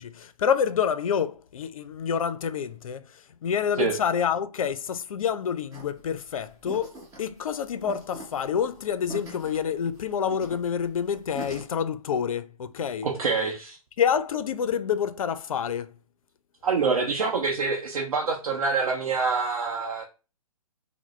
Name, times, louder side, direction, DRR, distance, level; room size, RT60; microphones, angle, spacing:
voice 1, 0.0-13.1 14.0-15.9, left 7 dB, 70° left, 0.4 m, -28 dB
sound 1, 5.7-11.6, right 1 dB, 15° right, 1.0 m, -43 dB
voice 2, 13.0-13.8 16.6-20.0, right 4 dB, 75° right, 0.7 m, -26 dB
3.4 x 2.0 x 3.0 m
hypercardioid pair, 135°, 19 cm